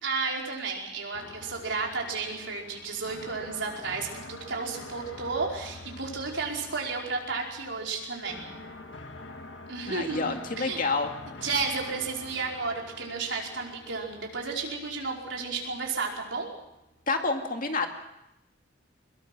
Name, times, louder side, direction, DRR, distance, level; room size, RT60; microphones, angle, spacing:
voice 1, 0.0-8.4 9.7-10.8 11.4-16.5, right 4 dB, 70° right, -1 dB, 5.1 m, -32 dB
sound 1, 1.1-17.1, left 2 dB, 70° left, 1.9 m, -46 dB
voice 2, 9.9-11.1 17.1-17.9, left 3 dB, 45° left, 4 dB, 2.2 m, -28 dB
23.5 x 21.5 x 6.1 m, 0.87 s
head